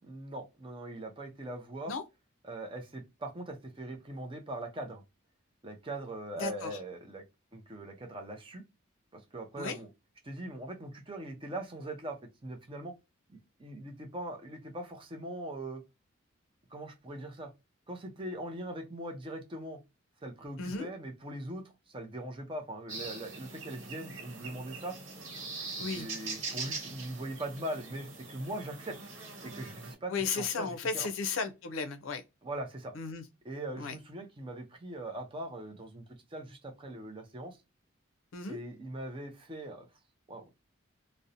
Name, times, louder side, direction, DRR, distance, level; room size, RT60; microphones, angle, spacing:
voice 1, 0.0-2.0 2.4-5.0 5.6-7.2 7.5-8.6 9.1-9.9 10.2-12.9 13.3-15.8 16.7-17.5 17.9-19.8 20.2-25.0 25.7-29.0 29.4-31.1 32.4-32.9 33.4-37.6 38.5-39.9 40.3-40.5, right 1 dB, 25° right, 0.5 m, -41 dB
voice 2, 6.4-6.7 9.6-9.8 20.6-20.9 25.8-26.1 30.1-32.2 32.9-33.2 33.8-33.9 38.3-38.6, left 5 dB, 70° left, 0.4 m, -34 dB
sound 1, 22.9-29.9, right 3 dB, 70° right, 1.0 m, -42 dB
2.5 x 2.0 x 2.6 m
head